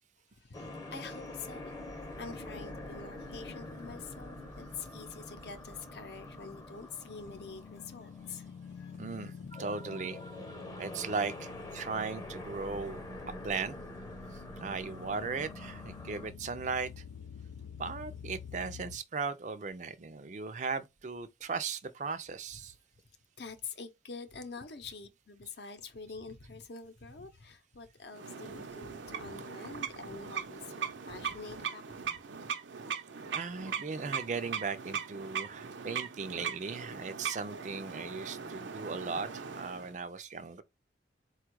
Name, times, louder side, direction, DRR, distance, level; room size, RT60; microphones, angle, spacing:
voice 1, 0.3-1.7 2.2-4.4 4.7-9.3 23.4-32.0, left 4 dB, 60° left, 0.7 m, -46 dB
sound 1, 0.5-16.3, left 1 dB, 20° left, 0.7 m, -46 dB
sound 2, 7.1-19.0, left 6 dB, 85° left, 0.3 m, -48 dB
voice 2, 9.0-9.3 9.6-10.2 10.8-13.0 13.4-13.7 14.6-17.0 17.8-22.7 33.3-40.6, right 4 dB, 40° right, 0.4 m, -37 dB
sound 3, 28.1-39.9, right 6 dB, 85° right, 0.7 m, -40 dB
4.3 x 2.3 x 4.5 m
head